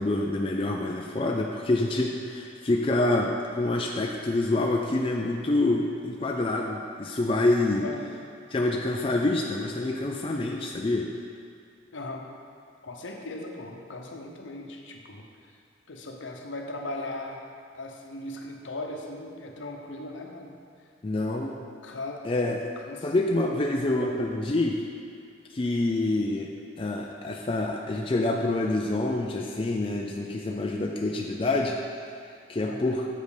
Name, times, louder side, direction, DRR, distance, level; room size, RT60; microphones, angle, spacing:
voice 1, 0.0-7.8 8.5-11.1 21.0-21.6 22.2-22.6 23.0-24.8 25.5-26.5 26.8-31.8 32.5-33.1, left 2 dB, 25° left, 0 dB, 0.4 m, -26 dB
voice 2, 11.9-12.3 12.8-15.6 15.9-17.4 17.7-20.6 21.8-22.4 22.8-23.1 32.6-32.9, left 2 dB, 75° left, 1 dB, 0.8 m, -38 dB
7.7 x 5.3 x 5.0 m, 2.3 s
head